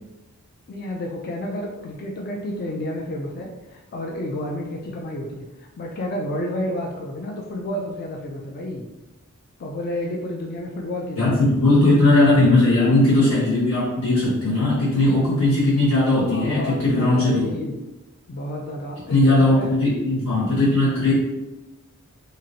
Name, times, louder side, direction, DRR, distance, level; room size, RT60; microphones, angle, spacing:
voice 1, 0.7-8.9 9.6-11.5 16.1-17.8 18.3-19.7, left 1 dB, 45° left, -1 dB, 0.3 m, -31 dB
voice 2, 11.2-17.5 19.1-21.1, left 2 dB, 75° left, -8 dB, 1.3 m, -18 dB
2.9 x 2.5 x 2.7 m, 1.1 s
head